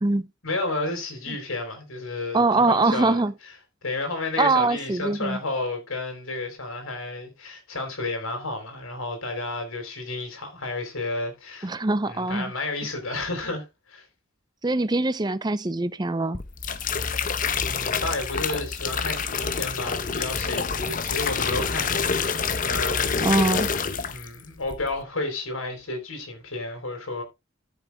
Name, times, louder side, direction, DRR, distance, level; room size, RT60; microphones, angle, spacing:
voice 1, 0.4-3.5 3.8-11.7 12.1-14.0 17.6-23.7 24.1-27.2, left 2 dB, 85° left, 4.3 m, -32 dB
voice 2, 2.3-3.3 4.4-5.4 11.6-12.5 14.6-16.4 23.2-23.7, right 2 dB, 20° right, 0.5 m, -23 dB
sound 1, 16.3-24.4 24.7-25.0, left 5 dB, 40° left, 0.8 m, -27 dB
13.5 x 6.5 x 3.4 m
head